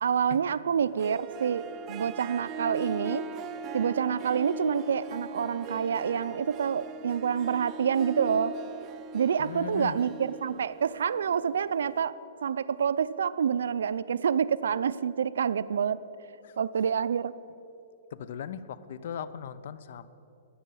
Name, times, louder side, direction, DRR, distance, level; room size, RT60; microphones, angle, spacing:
voice 1, 0.0-3.3 3.7-8.6 9.1-16.0 16.6-17.3, right 7 dB, 85° right, 16 dB, 0.4 m, -27 dB
Harp, 0.8-12.0, right 4 dB, 20° right, 0.5 m, -40 dB
voice 2, 9.4-10.0 16.4-16.5 18.1-20.1, left 8 dB, 55° left, 16 dB, 0.6 m, -38 dB
12.5 x 9.0 x 8.6 m, 2.8 s
hypercardioid pair, 165°, 0 cm